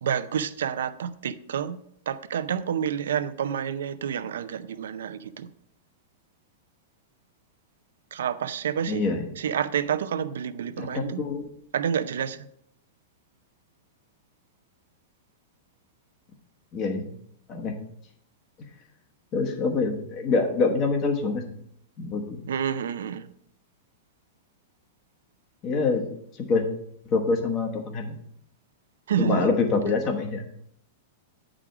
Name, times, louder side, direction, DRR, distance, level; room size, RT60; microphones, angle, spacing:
voice 1, 0.0-1.8 2.1-5.5 8.1-9.0 9.4-11.2 11.7-12.5 22.5-23.3 29.1-29.5, right 8 dB, 85° right, 13 dB, 0.5 m, -29 dB
voice 2, 8.9-9.2 10.8-11.5 16.7-17.0 17.5-17.7 19.3-21.4 22.0-22.4 25.6-26.1 26.5-26.7 27.1-28.2 29.2-30.4, left 4 dB, 30° left, 3 dB, 1.1 m, -25 dB
9.0 x 5.0 x 4.9 m, 0.71 s
supercardioid pair, 145°, 0 cm